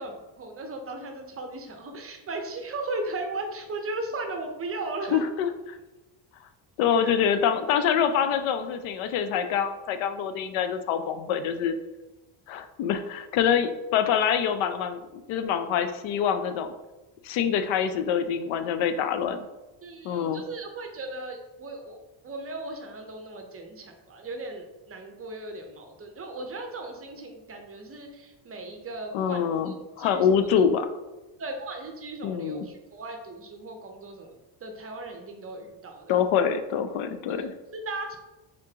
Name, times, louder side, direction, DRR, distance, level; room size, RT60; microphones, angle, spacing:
voice 1, 0.0-5.2 6.9-7.1 19.8-30.3 31.4-34.4 34.6-36.2 37.4-37.5 37.7-38.2, right 2 dB, 30° right, 4 dB, 0.6 m, -37 dB
voice 2, 5.1-5.5 6.8-11.8 12.5-16.7 17.2-19.4 20.0-20.4 29.1-30.9 32.2-32.7 36.1-37.5, left 8 dB, 85° left, 10 dB, 0.5 m, -25 dB
3.7 x 3.6 x 2.8 m, 1.1 s
cardioid pair, 105°, 46 cm